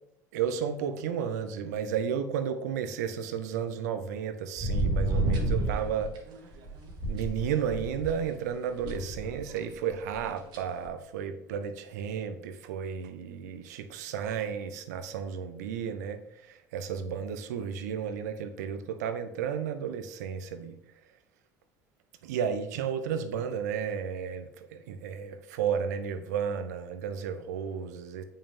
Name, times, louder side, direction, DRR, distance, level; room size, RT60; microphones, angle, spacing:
voice 1, 0.3-6.1 7.0-16.2 16.5-20.7 22.2-28.2, right 7 dB, 70° right, 10 dB, 0.8 m, -33 dB
sound 1, 4.6-8.1 8.8-9.6 9.9-10.9, right 2 dB, 55° right, 1.8 m, -31 dB
8.5 x 5.6 x 3.5 m, 0.81 s
hypercardioid pair, 65°, 9 cm